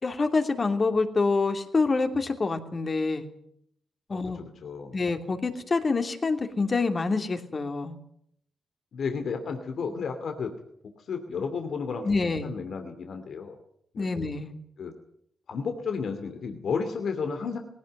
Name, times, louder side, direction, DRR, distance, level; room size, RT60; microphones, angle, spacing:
voice 1, 0.0-3.3 4.1-4.4 4.9-8.0 12.0-12.5 14.0-14.5, left 3 dB, 40° left, 6 dB, 2.9 m, -26 dB
voice 2, 4.1-4.9 8.9-10.5 11.0-12.2 12.4-13.6 13.9-14.1 14.8-14.9 15.5-17.6, left 5 dB, 70° left, 5 dB, 2.6 m, -32 dB
19.5 x 17.0 x 9.1 m, 0.71 s
cardioid pair, 65°, 0 cm